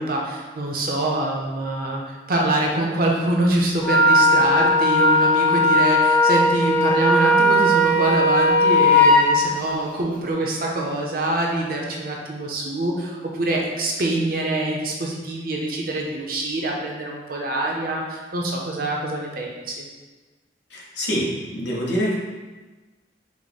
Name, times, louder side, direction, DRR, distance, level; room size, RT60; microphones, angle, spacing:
voice 1, 0.0-19.9, right 1 dB, 50° right, -1 dB, 0.6 m, -25 dB
Wind instrument woodwind instrument, 3.8-9.3, left 1 dB, 10° left, 0.5 m, -17 dB
voice 2, 20.7-22.1, equal, 70° left, -4 dB, 1.0 m, -25 dB
4.7 x 2.1 x 4.0 m, 1.2 s
head